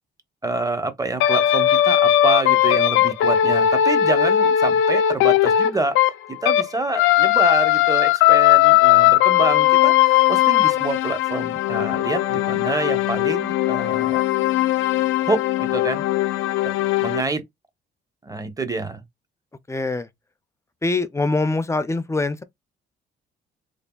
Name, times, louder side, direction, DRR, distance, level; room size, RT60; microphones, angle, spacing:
voice 1, 0.4-14.2 15.3-16.0 17.0-17.4 18.2-19.0, right 3 dB, 15° right, 0.7 m, -27 dB
sound 1, 1.2-6.7 6.9-17.2, left 12 dB, 90° left, 0.4 m, -18 dB
voice 2, 19.7-20.1 20.8-22.4, left 3 dB, 15° left, 0.4 m, -23 dB
3.3 x 2.3 x 2.3 m
cardioid pair, 90°, 20 cm